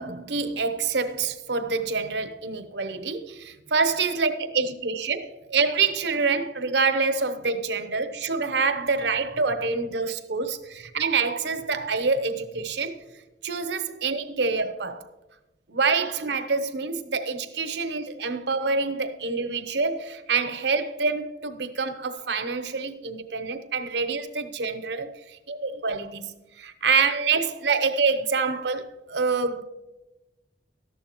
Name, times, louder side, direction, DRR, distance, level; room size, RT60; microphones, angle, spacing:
voice 1, 0.0-13.0 13.4-15.1 15.7-28.8 29.1-29.6, right 4 dB, 70° right, 0.8 m, -26 dB
13.0 x 11.0 x 3.0 m
head